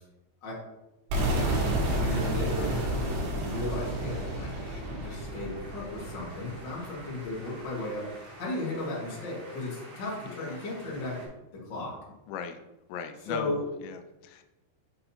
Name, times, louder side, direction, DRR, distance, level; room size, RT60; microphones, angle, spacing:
sound 1, 1.1-7.0, right 1 dB, 75° right, 3.6 m, -30 dB
voice 1, 2.0-11.2 11.5-12.0 13.3-13.6, left 2 dB, 55° left, -5 dB, 1.3 m, -35 dB
sound 2, 3.5-11.3, right 2 dB, 45° right, 2.3 m, -50 dB
voice 2, 10.3-10.6 12.3-12.6 12.9-13.5 13.8-14.4, left 6 dB, 85° left, 8 dB, 2.7 m, -38 dB
6.6 x 5.6 x 2.9 m, 0.96 s
omnidirectional pair, 5.2 m